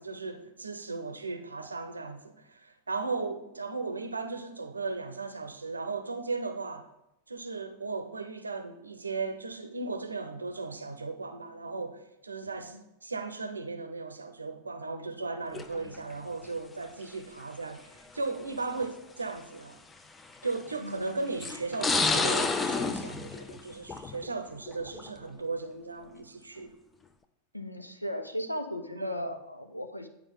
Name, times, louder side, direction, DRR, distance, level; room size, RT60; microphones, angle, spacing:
voice 1, 0.0-6.9 7.3-19.8 20.4-26.7 29.0-29.3, right 3 dB, 80° right, 0.7 m, -36 dB
sound 1, 15.5-16.0 17.0-17.1 18.2-18.3 18.8-18.9 20.3-20.7 21.4-24.3 24.7-25.1, left 3 dB, 15° left, 0.5 m, -29 dB
voice 2, 20.8-21.1 27.5-30.1, left 1 dB, 90° left, 0.6 m, -36 dB
9.7 x 4.6 x 3.7 m
figure-of-eight pair, 90°, 0 cm